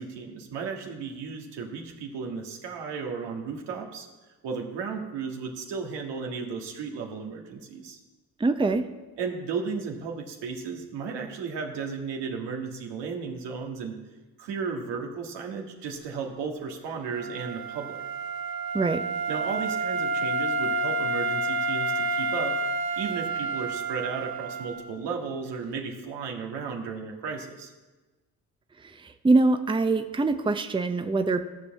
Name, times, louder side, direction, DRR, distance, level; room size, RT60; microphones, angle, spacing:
voice 1, 0.0-4.1 4.4-8.0 9.2-14.0 14.4-18.0 19.3-22.6 23.0-27.7, right 5 dB, 85° right, 2 dB, 1.8 m, -34 dB
voice 2, 8.4-8.8 18.7-19.0 28.8-31.4, right 3 dB, 10° right, 8 dB, 0.7 m, -24 dB
Wind instrument woodwind instrument, 17.1-24.9, right 3 dB, 60° right, 1.0 m, -29 dB
14.5 x 5.4 x 7.3 m, 1.2 s
supercardioid pair, 75°, 41 cm